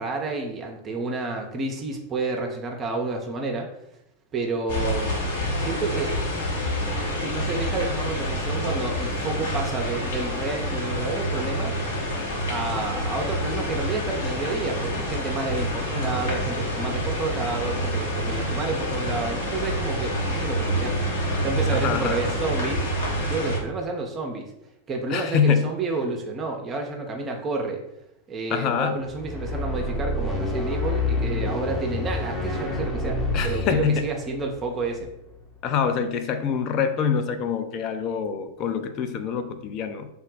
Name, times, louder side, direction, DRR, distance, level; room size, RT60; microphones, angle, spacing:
voice 1, 0.0-3.7 4.3-5.2 5.6-6.1 7.0-11.8 12.5-21.0 21.4-22.8 23.3-24.5 24.9-27.8 28.3-35.1, right 3 dB, 25° right, 2 dB, 0.5 m, -30 dB
sound 1, 4.7-23.6, equal, 60° left, 0.9 m, -27 dB
voice 2, 21.7-22.3 25.1-25.7 28.5-29.0 33.3-34.1 35.6-40.1, left 7 dB, 35° left, 9 dB, 0.4 m, -25 dB
sound 2, 29.0-35.4, left 2 dB, 10° left, 0.8 m, -28 dB
3.4 x 2.1 x 3.9 m, 0.82 s
figure-of-eight pair, 90°, 0 cm